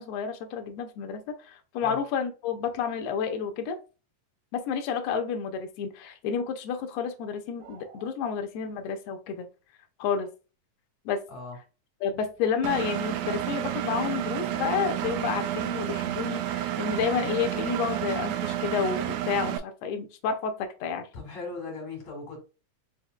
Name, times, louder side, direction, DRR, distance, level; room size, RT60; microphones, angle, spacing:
voice 1, 0.0-3.8 4.5-9.5 10.0-10.3 11.0-11.2 12.0-21.1, left 7 dB, 80° left, 1.5 m, -30 dB
sound 1, 7.6-8.1, right 5 dB, 70° right, 1.7 m, -50 dB
Engine, 12.6-19.6, right 12 dB, 85° right, 1.6 m, -30 dB
voice 2, 21.1-22.4, left 3 dB, 40° left, 1.9 m, -38 dB
4.8 x 4.2 x 2.2 m
omnidirectional pair, 3.7 m